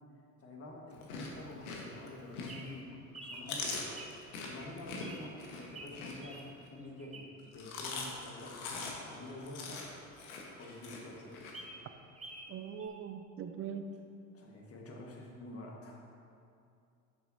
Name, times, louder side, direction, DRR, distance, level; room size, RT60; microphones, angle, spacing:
voice 1, 0.4-4.1 4.5-6.4 6.7-9.8 10.6-11.6 14.3-16.0, left 2 dB, 30° left, 0 dB, 1.6 m, -48 dB
Chewing mastication, 0.9-2.8 3.2-6.7 7.4-11.5, left 3 dB, 70° left, 1.4 m, -42 dB
Bird vocalization bird call bird song, 2.4-7.5 8.0-10.1 10.5-10.6 10.8-10.9 11.3-12.5 12.8-12.9, right 2 dB, 15° right, 1.2 m, -51 dB
voice 2, 12.5-13.9, right 7 dB, 30° right, 8 dB, 0.5 m, -41 dB
10.5 x 7.1 x 2.7 m, 2.5 s
hypercardioid pair, 75°, 45 cm